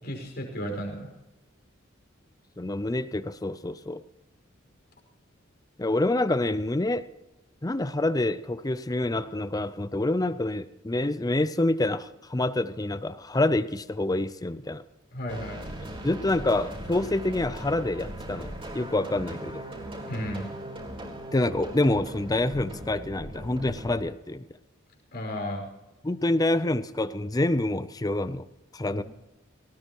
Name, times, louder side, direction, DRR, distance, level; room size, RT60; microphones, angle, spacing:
voice 1, 0.0-1.1 15.1-15.6 20.1-20.5 25.1-25.6 28.8-29.0, equal, 55° left, 1 dB, 5.4 m, -33 dB
voice 2, 2.6-4.0 5.8-7.1 7.6-14.8 16.0-19.6 21.3-24.4 26.0-28.4 28.7-29.0, left 2 dB, 20° left, 14 dB, 0.5 m, -27 dB
sound 1, 15.3-24.0, right 1 dB, 25° right, 3.8 m, -39 dB
19.0 x 18.5 x 3.0 m, 0.96 s
head